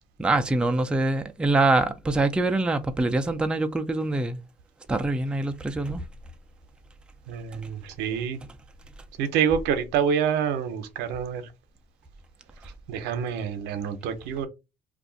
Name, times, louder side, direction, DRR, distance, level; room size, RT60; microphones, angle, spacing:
voice 1, 0.2-4.4 4.9-6.0, right 2 dB, 5° right, 0.3 m, -24 dB
voice 2, 7.3-8.4 9.2-11.5 12.9-14.5, right 7 dB, 90° right, 0.7 m, -27 dB
2.5 x 2.3 x 3.8 m
cardioid pair, 110°, 17 cm